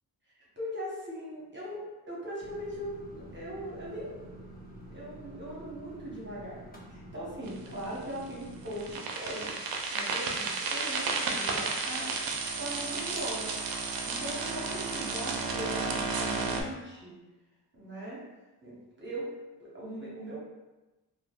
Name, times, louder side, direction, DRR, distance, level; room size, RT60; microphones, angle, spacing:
voice 1, 0.3-4.3 4.9-9.6 9.9-12.3 12.5-13.6 14.1-17.2 17.7-18.3 18.6-20.4, equal, 25° right, -6 dB, 0.8 m, -40 dB
sound 1, 2.4-9.0, right 1 dB, 20° left, 0.6 m, -48 dB
sound 2, 7.5-8.3 8.7-16.6, right 4 dB, 60° right, 0.5 m, -32 dB
3.1 x 2.1 x 2.3 m, 1.1 s
cardioid pair, 70°, 41 cm